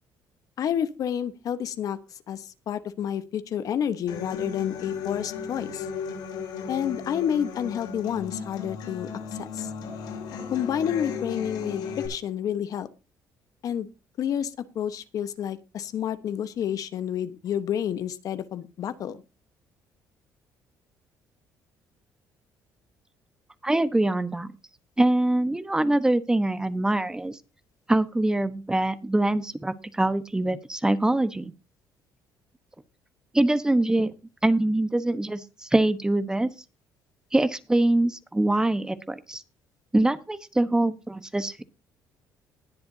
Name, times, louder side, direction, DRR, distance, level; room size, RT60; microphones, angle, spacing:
voice 1, 0.6-2.0 2.3-5.9 6.7-9.1 9.4-9.7 10.5-12.9 13.6-13.9 14.2-19.2, left 9 dB, 60° left, 12 dB, 1.1 m, -29 dB
Human voice / Acoustic guitar, 4.1-12.1, left 5 dB, 90° left, 6.9 m, -35 dB
voice 2, 23.6-24.5 25.0-27.4 27.9-31.5 33.3-34.1 34.4-36.5 37.3-39.4 39.9-41.6, right 1 dB, 10° right, 12 dB, 1.1 m, -24 dB
20.5 x 7.8 x 2.7 m, 0.28 s
cardioid pair, 115°, 7 cm